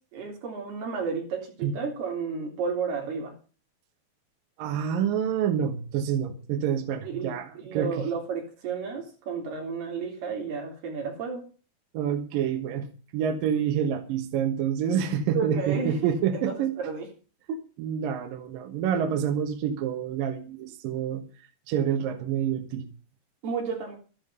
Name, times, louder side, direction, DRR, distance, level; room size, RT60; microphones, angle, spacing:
voice 1, 0.1-3.3 7.0-11.4 15.3-17.1 17.5-17.6 23.4-24.0, right 5 dB, 90° right, 0 dB, 5.4 m, -32 dB
voice 2, 4.6-8.1 11.9-12.9 13.1-16.7 17.8-21.2 21.7-22.9, right 8 dB, 70° right, 6 dB, 2.9 m, -27 dB
13.0 x 11.0 x 5.6 m, 0.38 s
omnidirectional pair, 4.4 m